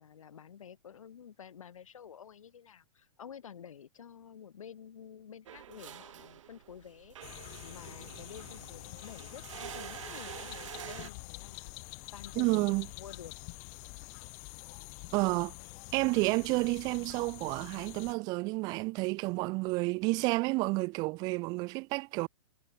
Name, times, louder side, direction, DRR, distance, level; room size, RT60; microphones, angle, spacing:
voice 1, 0.0-13.3, left 8 dB, 85° left, 5.1 m, -50 dB
sound 1, 5.5-11.1, right 11 dB, 70° right, 1.3 m, -47 dB
sound 2, 7.2-18.1, left 39 dB, 35° left, 0.6 m, -47 dB
voice 2, 12.4-12.9 15.1-15.5 15.9-22.3, right 25 dB, 25° right, 0.4 m, -30 dB
hypercardioid pair, 145°, 17 cm